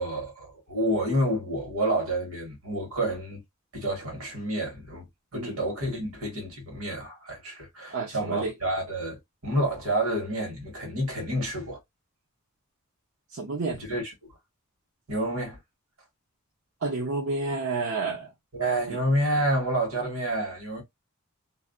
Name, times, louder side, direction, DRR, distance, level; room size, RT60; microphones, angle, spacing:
voice 1, 0.0-3.4 3.7-5.0 5.3-11.8 13.9-14.0 15.1-15.6 18.5-20.8, right 1 dB, 85° right, 1.3 m, -29 dB
voice 2, 7.9-8.5 13.3-13.8 16.8-18.3 18.9-19.0, right 3 dB, 60° right, 0.6 m, -30 dB
2.5 x 2.1 x 2.4 m
head